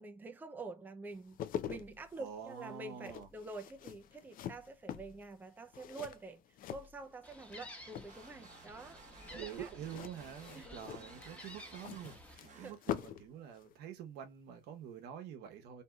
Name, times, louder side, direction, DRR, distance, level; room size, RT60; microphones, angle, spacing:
voice 1, 0.0-6.4 6.7-9.7 10.5-10.9 12.5-12.8, right 3 dB, 10° right, 0.4 m, -47 dB
sound 1, 1.1-7.6 7.9-8.5 9.8-13.3 13.6-13.7, left 10 dB, 55° left, 0.4 m, -44 dB
voice 2, 2.2-3.3 9.3-15.8, right 9 dB, 80° right, 0.9 m, -47 dB
Gull seagull, 7.2-12.4, left 1 dB, 10° left, 1.1 m, -53 dB
sound 2, 8.0-13.3, right 4 dB, 45° right, 1.0 m, -58 dB
2.7 x 2.7 x 2.2 m
cardioid pair, 110°, 17 cm